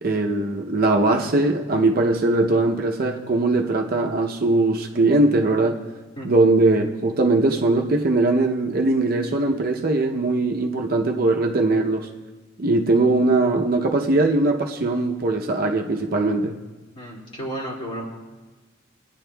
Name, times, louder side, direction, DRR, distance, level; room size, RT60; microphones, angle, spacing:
voice 1, 0.0-5.8 6.2-12.1 12.6-16.6, right 2 dB, 45° right, 2 dB, 0.6 m, -20 dB
voice 2, 16.9-18.1, right 1 dB, 25° left, -4 dB, 2.2 m, -32 dB
21.5 x 9.9 x 2.2 m, 1.2 s
head